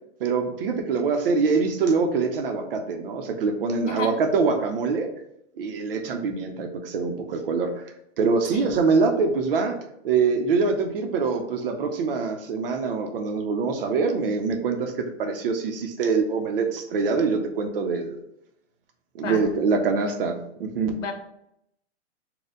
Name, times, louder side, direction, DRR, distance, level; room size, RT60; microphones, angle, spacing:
voice 1, 0.2-5.1 5.6-7.7 8.2-9.8 10.0-18.2 19.1-21.0, right 4 dB, 50° right, 5 dB, 0.7 m, -24 dB
voice 2, 3.9-4.1 8.5-8.8 19.2-19.4 21.0-21.1, left 3 dB, 85° left, 5 dB, 0.9 m, -31 dB
4.2 x 2.2 x 3.8 m, 0.78 s
hypercardioid pair, 160°, 36 cm